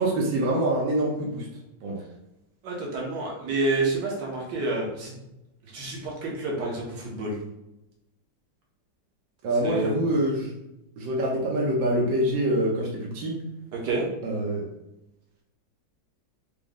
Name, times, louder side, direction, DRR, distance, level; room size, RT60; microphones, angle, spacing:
voice 1, 0.0-1.4 1.8-2.0 9.4-10.5 11.0-13.4 14.2-14.7, right 1 dB, 90° right, -2 dB, 1.6 m, -25 dB
voice 2, 2.6-5.1 5.6-7.4 9.4-9.9 13.7-14.1, right 2 dB, 70° right, -2 dB, 1.7 m, -29 dB
5.3 x 2.0 x 3.5 m, 0.89 s
omnidirectional pair, 2.0 m